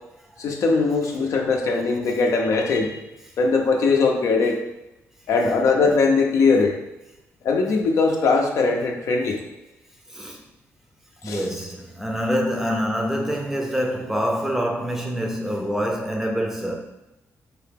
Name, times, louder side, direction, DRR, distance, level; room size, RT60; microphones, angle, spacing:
voice 1, 0.4-3.0 3.4-4.6 5.3-6.8 7.4-9.4 11.2-11.4, left 4 dB, 70° left, 0.6 m, -20 dB
voice 2, 10.1-10.4 11.2-16.7, equal, 5° right, 0.5 m, -25 dB
3.8 x 2.8 x 3.6 m
wide cardioid pair, 140°, 5 cm